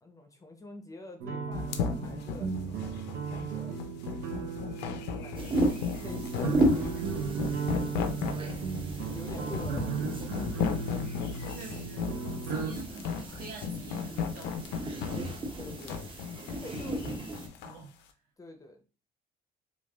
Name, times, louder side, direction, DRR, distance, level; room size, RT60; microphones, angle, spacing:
voice 1, 0.0-2.9 3.3-3.8 4.7-5.7 6.0-7.8 8.9-10.7 15.5-16.2 16.5-17.1 18.4-18.9, left 1 dB, 20° left, 0.5 m, -48 dB
sound 1, 1.2-12.7, right 5 dB, 85° right, 0.5 m, -36 dB
sound 2, 1.5-17.8, left 6 dB, 85° left, 0.5 m, -35 dB
sound 3, 5.3-17.5, right 1 dB, 30° right, 0.6 m, -35 dB
voice 2, 11.4-14.5 17.6-17.9, right 4 dB, 60° right, 1.0 m, -45 dB
3.2 x 2.3 x 2.3 m
cardioid pair, 110°, 17 cm